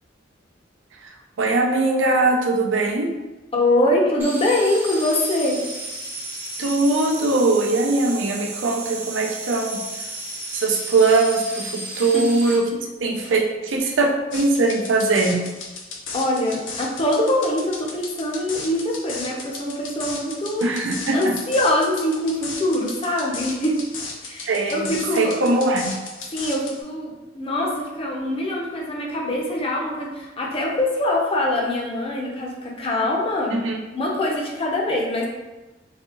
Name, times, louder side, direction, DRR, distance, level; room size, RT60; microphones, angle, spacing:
voice 1, 1.4-3.1 6.6-9.8 10.5-15.4 20.6-21.3 24.5-24.9 25.1-25.9 33.5-33.8, right 3 dB, 85° right, 2 dB, 0.5 m, -21 dB
voice 2, 3.5-5.6 12.0-12.3 13.2-13.3 16.1-20.7 21.1-23.8 24.2-25.3 26.3-33.6 33.9-35.3, left 1 dB, 30° left, -1 dB, 0.6 m, -23 dB
sound 1, 4.2-12.6, right 2 dB, 10° right, 0.6 m, -33 dB
sound 2, 14.3-26.8, left 4 dB, 85° left, 0.6 m, -35 dB
3.9 x 2.2 x 3.0 m, 1.1 s
head